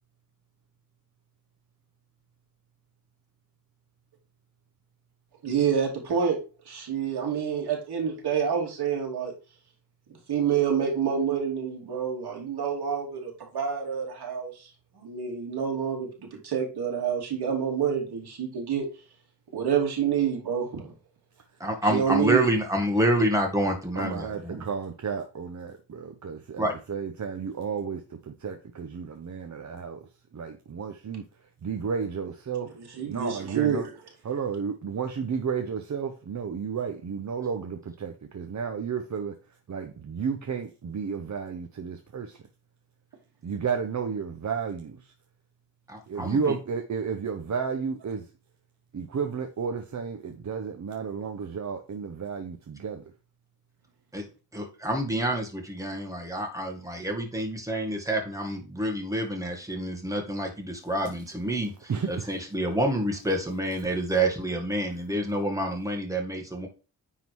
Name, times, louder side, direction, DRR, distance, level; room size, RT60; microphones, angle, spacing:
voice 1, 5.4-6.4 6.7-9.3 10.3-14.7 15.0-18.9 19.5-20.9 21.9-22.4 33.0-33.8, right 7 dB, 85° right, 2.8 m, -27 dB
voice 2, 21.6-24.6 26.6-26.7 45.9-46.4 54.1-54.2 54.5-61.7 62.1-66.7, right 1 dB, 10° right, 1.8 m, -28 dB
voice 3, 23.9-33.9 34.2-42.4 43.4-45.1 46.1-48.3 48.9-53.1 61.9-62.4, right 6 dB, 50° right, 0.9 m, -32 dB
9.6 x 3.9 x 4.6 m
wide cardioid pair, 135°, 38 cm